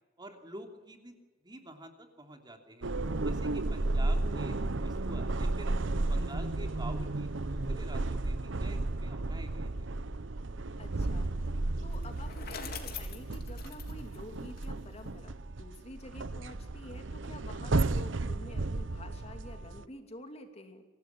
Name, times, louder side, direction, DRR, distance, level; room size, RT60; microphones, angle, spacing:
voice 1, 0.2-1.2 1.4-2.9 3.2-4.5 4.8-5.7 6.1-9.9, right 1 dB, 25° right, 4 dB, 3.0 m, -48 dB
sound 1, 2.8-19.9, right 2 dB, 75° right, 0.9 m, -33 dB
voice 2, 4.1-4.4 10.8-11.3 11.8-20.8, left 1 dB, 35° left, 6 dB, 2.8 m, -49 dB
Bicycle, 11.9-15.1, left 7 dB, 55° left, 3.7 m, -45 dB
25.0 x 18.0 x 9.5 m, 1.3 s
head